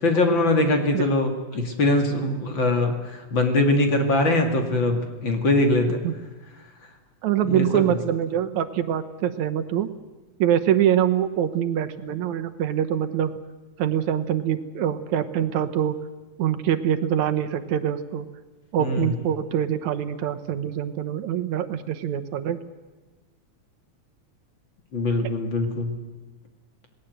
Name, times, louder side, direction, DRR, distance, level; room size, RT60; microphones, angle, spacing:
voice 1, 0.0-6.0 7.5-7.9 18.8-19.1 24.9-25.9, left 2 dB, 40° left, 5 dB, 2.7 m, -22 dB
voice 2, 7.2-9.9 10.4-13.3 13.8-16.0 16.4-18.3 18.7-22.6, right 10 dB, 75° right, 9 dB, 2.4 m, -24 dB
27.0 x 19.0 x 8.0 m, 1.2 s
omnidirectional pair, 3.4 m